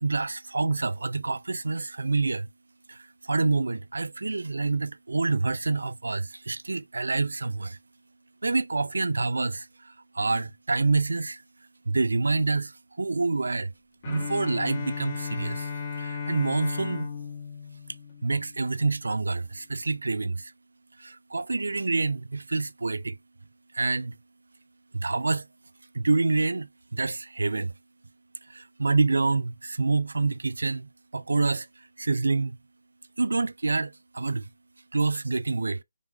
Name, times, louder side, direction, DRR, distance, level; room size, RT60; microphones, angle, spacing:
voice 1, 0.0-2.5 2.9-7.8 8.4-11.4 11.9-13.7 14.0-15.7 16.0-17.1 18.2-20.5 21.0-23.2 23.7-24.2 24.9-25.5 25.9-27.7 28.5-32.6 33.2-34.5 34.9-35.8, right 3 dB, 75° right, 0.4 m, -27 dB
Bowed string instrument, 14.0-18.9, left 6 dB, 30° left, 0.8 m, -35 dB
4.7 x 3.4 x 2.2 m
figure-of-eight pair, 165°, 0 cm